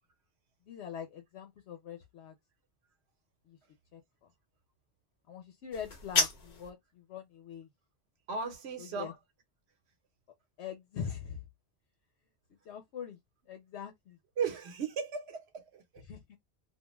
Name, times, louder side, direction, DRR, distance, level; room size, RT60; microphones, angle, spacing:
voice 1, 0.7-2.4 3.5-3.6 3.9-4.0 5.3-7.7 8.8-9.1 10.6-11.4 12.6-13.2 13.5-14.2 16.1-16.4, left 8 dB, 80° left, 0.9 m, -43 dB
sound 1, 5.7-6.7, left 3 dB, 45° left, 0.7 m, -31 dB
voice 2, 8.3-9.1 14.4-16.0, right 6 dB, 75° right, 1.1 m, -36 dB
2.4 x 2.2 x 3.0 m
omnidirectional pair, 1.1 m